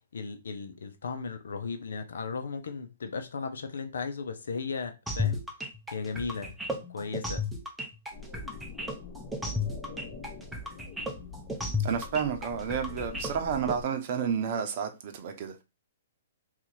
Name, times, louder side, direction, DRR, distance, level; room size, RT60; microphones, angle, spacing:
voice 1, 0.1-5.4 5.9-6.6 6.9-7.4, left 5 dB, 75° left, 0.6 m, -36 dB
sound 1, 5.1-13.8, left 2 dB, 5° right, 0.7 m, -33 dB
sound 2, 8.1-13.8, left 5 dB, 35° left, 1.1 m, -44 dB
voice 2, 11.8-15.6, right 7 dB, 50° right, 0.7 m, -31 dB
2.9 x 2.4 x 4.0 m
hypercardioid pair, 130°, 0 cm